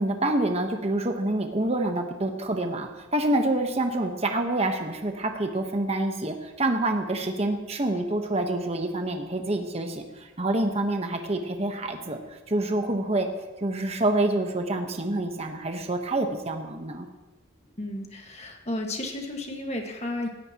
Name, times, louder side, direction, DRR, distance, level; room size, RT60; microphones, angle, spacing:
voice 1, 0.0-13.3 13.6-17.1, right 2 dB, 30° right, 4 dB, 1.1 m, -27 dB
voice 2, 17.8-20.3, left 1 dB, 35° left, 2 dB, 1.7 m, -33 dB
18.0 x 14.0 x 3.0 m, 1.1 s
head